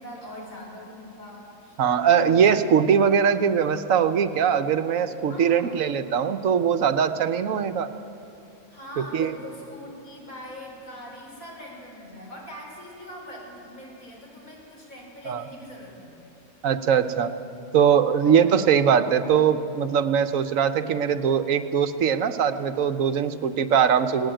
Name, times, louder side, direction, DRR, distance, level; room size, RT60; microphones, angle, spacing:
voice 1, 0.0-1.8 5.3-5.9 8.7-16.2 18.2-18.6, equal, 80° left, -2 dB, 5.4 m, -42 dB
voice 2, 1.8-7.9 9.0-9.3 15.3-15.4 16.6-17.3 17.7-24.3, right 7 dB, 75° right, 10 dB, 1.2 m, -21 dB
20.0 x 17.5 x 9.1 m, 2.6 s
omnidirectional pair, 1.4 m